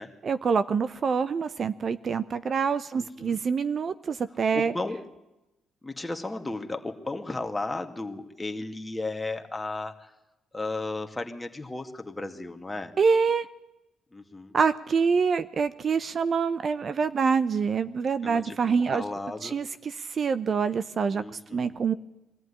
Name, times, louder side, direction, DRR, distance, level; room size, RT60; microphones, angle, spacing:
voice 1, 0.2-4.7 13.0-13.5 14.5-19.0 19.4-21.2 21.5-21.9, right 5 dB, 45° right, 13 dB, 0.8 m, -26 dB
voice 2, 2.9-3.4 4.5-5.0 5.8-10.1 10.5-12.9 14.1-14.5 18.2-19.6 21.1-21.8, left 2 dB, 15° left, 5 dB, 2.1 m, -34 dB
23.0 x 14.5 x 10.0 m, 0.96 s
cardioid pair, 90°, 0 cm